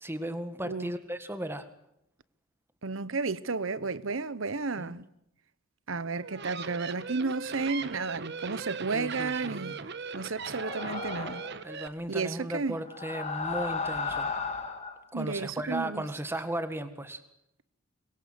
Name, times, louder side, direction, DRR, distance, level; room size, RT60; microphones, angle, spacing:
voice 1, 0.0-1.7 4.8-4.9 8.9-9.8 11.6-14.3 15.1-17.2, right 1 dB, 10° right, 1.8 m, -36 dB
voice 2, 2.8-5.0 5.9-9.7 10.1-11.4 12.1-12.8 15.1-16.0, right 4 dB, 70° right, 1.0 m, -32 dB
sound 1, 6.1-11.9, right 5 dB, 55° right, 1.3 m, -39 dB
sound 2, 10.4-11.6 12.8-15.0, left 4 dB, 35° left, 2.7 m, -34 dB
25.0 x 22.0 x 8.0 m
head